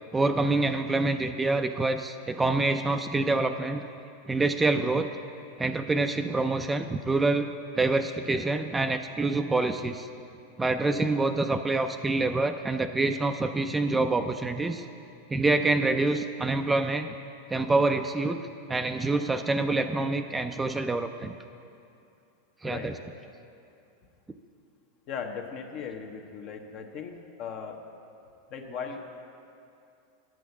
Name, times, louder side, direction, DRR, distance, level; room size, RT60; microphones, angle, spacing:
voice 1, 0.1-3.9 4.3-5.1 5.6-7.5 7.8-10.1 10.6-14.8 15.3-17.1 17.5-18.4 18.7-21.3 22.6-22.9, right 3 dB, 15° right, 7 dB, 0.4 m, -26 dB
voice 2, 22.6-22.9 25.1-27.8 28.5-29.0, left 6 dB, 45° left, 4 dB, 1.0 m, -38 dB
9.6 x 6.2 x 7.0 m, 2.6 s
hypercardioid pair, 105°, 0 cm